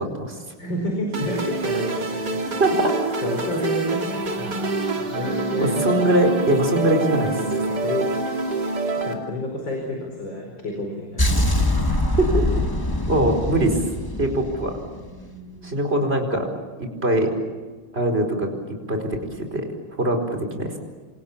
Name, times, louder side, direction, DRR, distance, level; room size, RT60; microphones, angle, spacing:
voice 1, 0.0-0.4 2.6-2.9 5.6-7.3 12.2-12.5 13.1-13.7 14.2-14.7 15.6-16.5 16.8-17.3 17.9-19.6 20.0-20.7, right 1 dB, 30° right, 4 dB, 4.9 m, -22 dB
voice 2, 0.6-2.8 3.2-4.7 5.0-5.8 7.3-8.1 9.0-11.5 13.0-13.3 15.0-15.7, left 1 dB, 60° left, 1 dB, 5.4 m, -30 dB
sound 1, 1.1-9.1, right 3 dB, 50° right, 3.4 m, -26 dB
sound 2, 11.2-15.3, left 1 dB, 15° left, 1.0 m, -23 dB
28.0 x 28.0 x 7.3 m, 1.4 s
omnidirectional pair, 2.3 m